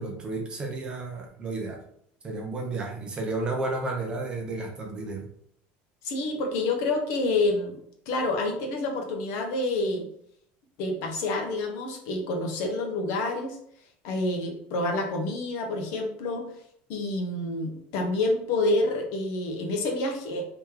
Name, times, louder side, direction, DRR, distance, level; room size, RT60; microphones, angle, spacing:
voice 1, 0.0-1.8 2.2-5.2, right 2 dB, 20° right, 1 dB, 0.6 m, -32 dB
voice 2, 6.0-7.8 8.1-10.1 10.8-13.6 14.0-16.5 16.9-20.5, left 2 dB, 55° left, 2 dB, 0.9 m, -28 dB
3.1 x 2.9 x 3.7 m, 0.68 s
cardioid pair, 175°, 5 cm